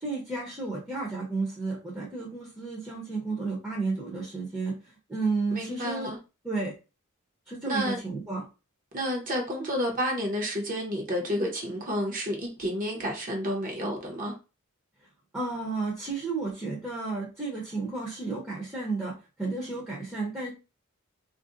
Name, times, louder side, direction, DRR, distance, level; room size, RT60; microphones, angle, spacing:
voice 1, 0.0-6.1 6.4-6.7 7.5-8.4 15.3-20.5, right 3 dB, 10° right, 0.7 m, -32 dB
voice 2, 5.5-6.2 7.7-8.0 8.9-14.3, equal, 40° right, 0.8 m, -30 dB
2.5 x 2.1 x 3.7 m
head